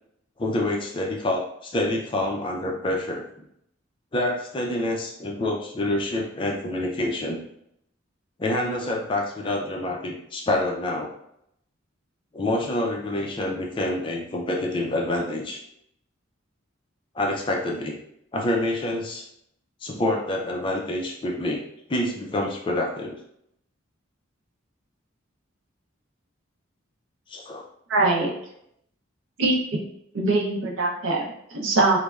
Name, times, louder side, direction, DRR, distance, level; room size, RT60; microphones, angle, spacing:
voice 1, 0.4-3.2 4.1-7.4 8.4-11.1 12.3-15.6 17.1-18.0 18.3-19.3 19.8-21.6 21.9-23.2 27.3-27.6 29.4-29.5, left 1 dB, 25° left, 0 dB, 0.3 m, -27 dB
voice 2, 27.9-28.3 29.4-29.6 30.1-32.0, right 2 dB, 75° right, 0 dB, 0.6 m, -22 dB
3.2 x 2.0 x 2.3 m, 0.75 s
head